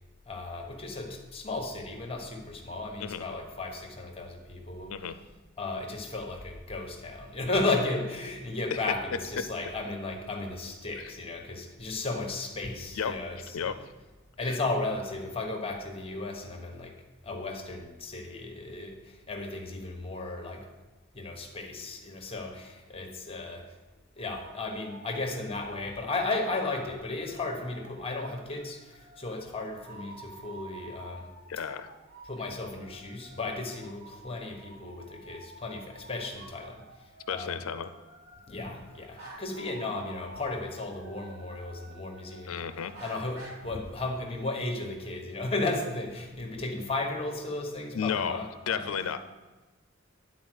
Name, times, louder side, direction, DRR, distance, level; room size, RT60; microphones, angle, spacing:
voice 1, 0.3-5.0 5.6-13.7 14.4-20.7 21.1-23.8 24.1-31.3 32.2-37.6 38.5-42.7 43.0-48.9, left 2 dB, 30° left, 3 dB, 1.1 m, -35 dB
sound 1, 24.2-43.6, right 2 dB, 90° right, 2.6 m, -51 dB
voice 2, 31.5-31.9 37.3-37.9 42.5-42.9 47.9-48.4 48.7-49.2, left 7 dB, 85° left, 12 dB, 0.5 m, -32 dB
10.5 x 4.2 x 6.2 m, 1.2 s
head